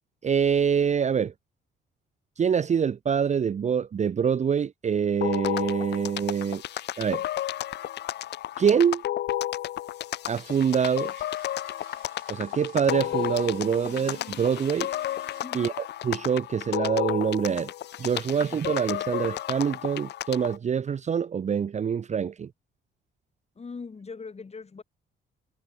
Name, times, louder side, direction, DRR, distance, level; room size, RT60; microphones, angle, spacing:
voice 1, 0.2-1.3 2.4-6.6 7.0-7.2 8.6-9.0 10.3-11.1 12.3-14.9 15.5-17.7 18.0-22.5, right 7 dB, 35° right, 0.6 m, -25 dB
sound 1, 5.2-20.6, left 13 dB, 60° left, 0.4 m, -32 dB
sound 2, 10.3-15.5, right 14 dB, 85° right, 4.2 m, -57 dB
voice 2, 15.4-15.8 23.6-24.8, left 4 dB, 30° left, 6.2 m, -40 dB
cardioid pair, 90°, 20 cm